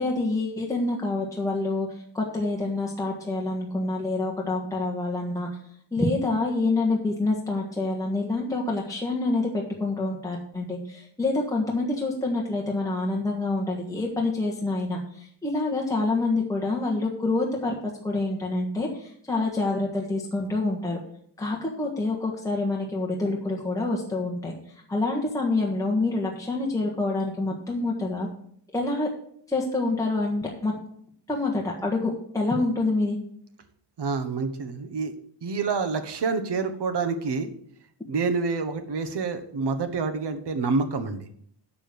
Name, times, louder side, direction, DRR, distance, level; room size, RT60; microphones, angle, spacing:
voice 1, 0.0-1.9 2.1-5.5 5.9-17.7 18.0-21.0 21.4-24.5 24.9-28.3 28.7-29.1 29.5-30.7 31.3-33.2, left 2 dB, 10° left, -2 dB, 1.4 m, -27 dB
voice 2, 34.0-35.1 35.4-37.5 38.1-41.2, right 4 dB, 70° right, 8 dB, 1.4 m, -27 dB
7.6 x 6.9 x 7.7 m, 0.64 s
wide cardioid pair, 150°, 43 cm